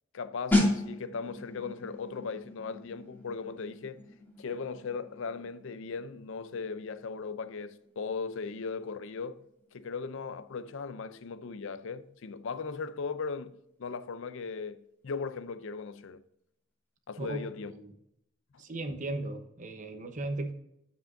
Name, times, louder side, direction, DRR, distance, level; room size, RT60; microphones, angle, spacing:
voice 1, 0.1-4.0 4.4-9.4 9.7-13.5 13.8-14.8 15.0-16.2 17.1-17.7, left 5 dB, 65° left, 0.5 m, -38 dB
sound 1, 0.5-11.0 11.3-11.5, left 2 dB, 10° left, 2.6 m, -35 dB
voice 2, 17.2-17.9 18.6-20.5, right 2 dB, 40° right, 1.0 m, -37 dB
8.9 x 7.7 x 2.6 m
head